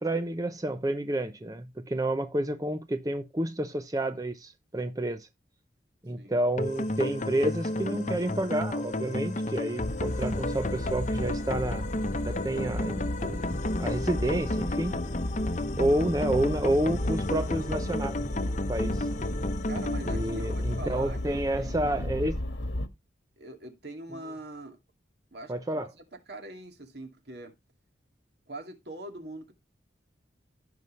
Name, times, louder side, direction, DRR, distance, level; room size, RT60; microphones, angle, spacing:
voice 1, 0.0-5.3 6.0-11.9 12.2-13.4 13.8-15.0 15.8-18.2 18.7-19.1 20.1-22.4 25.5-25.9, right 1 dB, 20° right, 0.6 m, -29 dB
sound 1, 6.6-21.6, left 1 dB, 40° left, 0.9 m, -33 dB
sound 2, 9.8-22.9, left 1 dB, 75° left, 1.6 m, -34 dB
voice 2, 19.7-21.2 21.6-21.9 23.4-24.8 25.3-25.9 26.3-27.5 28.5-29.5, right 1 dB, 60° right, 2.3 m, -42 dB
15.5 x 5.6 x 3.2 m
head